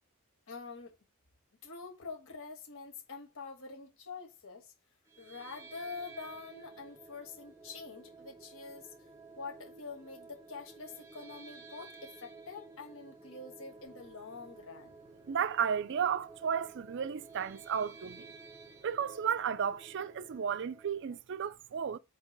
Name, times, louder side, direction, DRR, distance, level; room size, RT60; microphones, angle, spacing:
voice 1, 0.5-1.0 1.6-4.7 5.2-8.9 9.4-14.9, left 4 dB, 60° left, 1.4 m, -46 dB
sound 1, 5.1-21.2, right 4 dB, 15° right, 0.7 m, -53 dB
voice 2, 15.3-18.3 18.8-22.0, right 7 dB, 55° right, 0.4 m, -33 dB
8.3 x 3.0 x 5.1 m
head